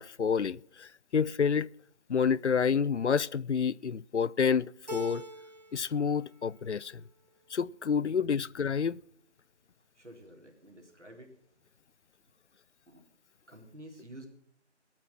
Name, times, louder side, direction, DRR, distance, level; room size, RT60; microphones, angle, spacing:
voice 1, 0.0-1.7 2.1-5.2 5.7-7.0 7.5-9.0, left 6 dB, 70° left, 0.5 m, -29 dB
Keyboard (musical), 4.9-6.0 6.3-7.0, right 2 dB, 35° right, 1.0 m, -44 dB
voice 2, 8.1-8.4 10.0-11.3 12.9-13.0 13.5-14.3, right 1 dB, 75° right, 4.0 m, -50 dB
18.0 x 8.8 x 7.5 m
figure-of-eight pair, 165°, 36 cm